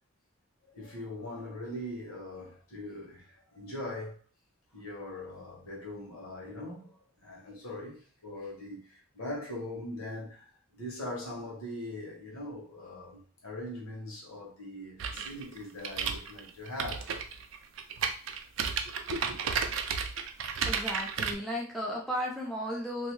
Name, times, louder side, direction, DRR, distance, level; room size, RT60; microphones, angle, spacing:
voice 1, 0.6-4.2 4.7-6.9 7.2-17.1 18.8-19.4, left 1 dB, 90° left, 1.2 m, -41 dB
sound 1, 15.0-21.3, right 6 dB, 65° right, 0.3 m, -33 dB
voice 2, 20.7-23.1, equal, ahead, 0.5 m, -34 dB
2.6 x 2.2 x 3.0 m
head